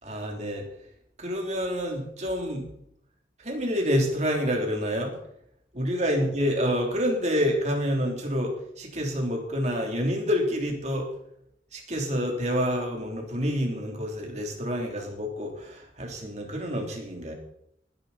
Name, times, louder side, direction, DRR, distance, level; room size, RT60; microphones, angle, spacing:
voice 1, 0.0-0.7 1.2-2.7 3.4-5.2 5.7-11.1 11.7-17.3, equal, 40° right, 1 dB, 3.3 m, -28 dB
19.0 x 10.5 x 4.3 m, 0.70 s
head